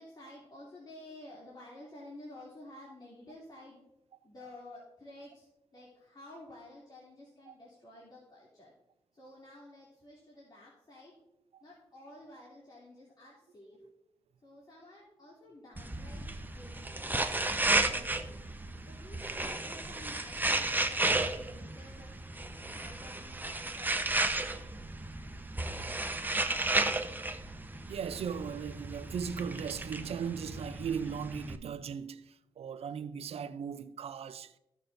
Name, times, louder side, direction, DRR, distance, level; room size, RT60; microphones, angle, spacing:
voice 1, 0.0-3.8 4.2-8.7 9.1-11.1 11.6-13.8 14.4-18.4 18.9-22.1 22.7-24.3, left 1 dB, 40° left, 2.9 m, -52 dB
sound 1, 15.8-31.6, right 2 dB, 15° right, 0.9 m, -33 dB
voice 2, 27.9-34.5, right 7 dB, 70° right, 0.5 m, -38 dB
15.0 x 6.1 x 2.6 m
supercardioid pair, 50°, 11 cm